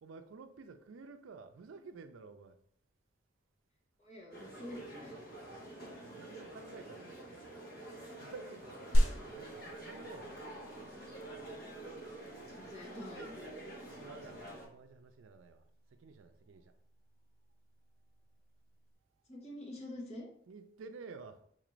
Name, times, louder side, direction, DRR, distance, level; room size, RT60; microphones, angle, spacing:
voice 1, 0.0-2.6 6.0-7.5 8.2-10.5 14.0-15.7 16.0-16.7 20.5-21.4, right 4 dB, 80° right, 0.4 m, -52 dB
voice 2, 4.0-5.2 12.4-13.4 19.3-20.3, left 1 dB, 35° left, 0.9 m, -47 dB
sound 1, 4.3-14.6, right 1 dB, 50° left, 1.3 m, -48 dB
sound 2, 15.7-18.9, equal, 85° left, 0.7 m, -37 dB
4.1 x 2.5 x 3.0 m
head